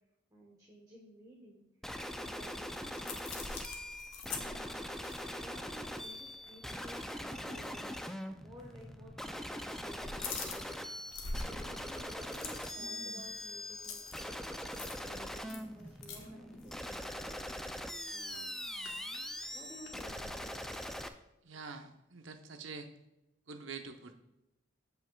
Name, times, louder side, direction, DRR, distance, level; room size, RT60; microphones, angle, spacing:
voice 1, 0.3-1.6 2.2-3.4 4.3-11.1 11.4-18.6 19.5-20.9, right 1 dB, 20° right, -2 dB, 1.1 m, -55 dB
sound 1, 1.8-21.1, left 1 dB, ahead, 0.3 m, -42 dB
sound 2, 2.5-6.6 6.9-7.1 7.5-7.7 8.6-9.2 9.5-20.4, left 4 dB, 65° left, 1.3 m, -46 dB
voice 2, 21.4-22.9 23.5-24.1, right 4 dB, 65° right, 6 dB, 0.8 m, -46 dB
13.5 x 5.6 x 2.3 m, 0.92 s
head